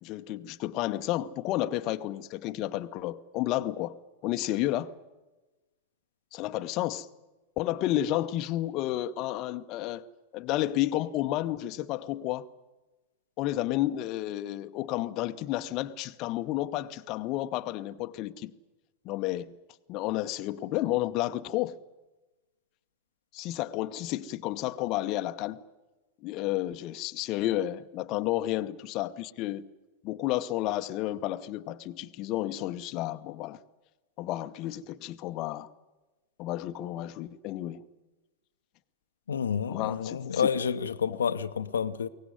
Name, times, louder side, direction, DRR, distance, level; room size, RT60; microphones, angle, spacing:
voice 1, 0.0-4.0 4.2-4.9 6.3-7.1 7.6-10.1 10.3-12.5 13.4-18.5 19.0-19.5 19.9-21.8 23.3-25.6 26.2-29.6 30.0-33.6 34.2-35.7 36.4-37.8 39.7-40.5 41.1-41.2, left 14 dB, 40° left, 0.8 m, -31 dB
voice 2, 39.3-42.1, left 7 dB, 70° left, 0.8 m, -29 dB
22.5 x 18.5 x 9.4 m
figure-of-eight pair, 90°, 0 cm